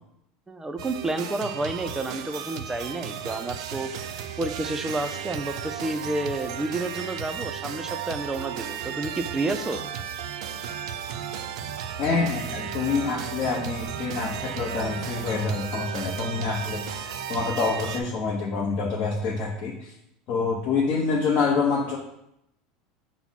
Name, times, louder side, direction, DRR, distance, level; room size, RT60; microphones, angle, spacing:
voice 1, 0.5-3.9 4.4-9.8, right 2 dB, 10° right, 7 dB, 0.4 m, -30 dB
sound 1, 0.8-18.0, right 8 dB, 85° right, 0.4 m, -34 dB
voice 2, 12.0-19.9 20.3-22.0, left 4 dB, 50° left, -3 dB, 0.7 m, -26 dB
5.7 x 2.0 x 4.0 m, 0.81 s
supercardioid pair, 125°, 3 cm